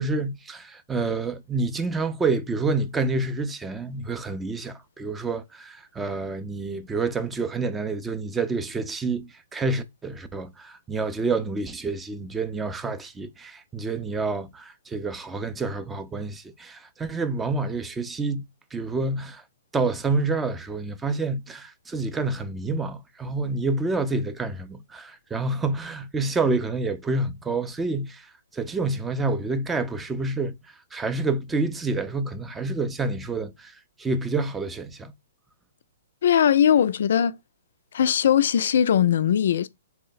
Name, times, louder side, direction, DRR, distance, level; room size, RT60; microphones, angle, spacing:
voice 1, 0.0-18.4 18.7-19.4 19.7-30.5 30.9-35.1, right 3 dB, 10° right, 0.4 m, -28 dB
voice 2, 36.2-37.4 37.9-39.7, left 9 dB, 65° left, 0.3 m, -20 dB
3.3 x 2.1 x 3.8 m
hypercardioid pair, 130°, 0 cm